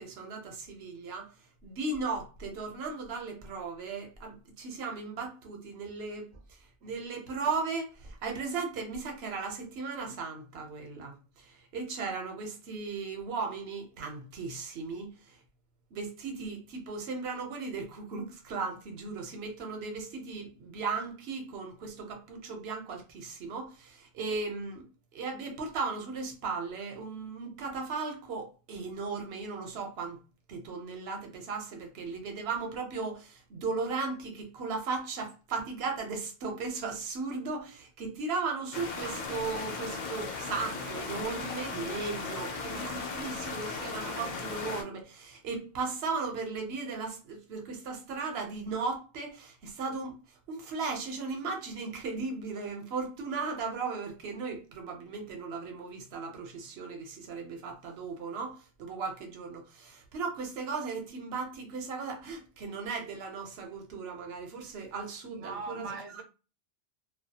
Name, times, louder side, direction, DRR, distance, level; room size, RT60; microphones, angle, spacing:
voice 1, 0.0-1.3 1.6-6.3 6.8-15.4 15.9-24.8 25.1-30.2 30.5-50.2 50.5-66.2, right 4 dB, 70° right, 0.9 m, -36 dB
sound 1, 38.7-44.8, left 4 dB, 55° left, 0.6 m, -37 dB
voice 2, 65.3-66.2, right 4 dB, 45° right, 0.5 m, -40 dB
2.3 x 2.3 x 2.7 m
omnidirectional pair, 1.1 m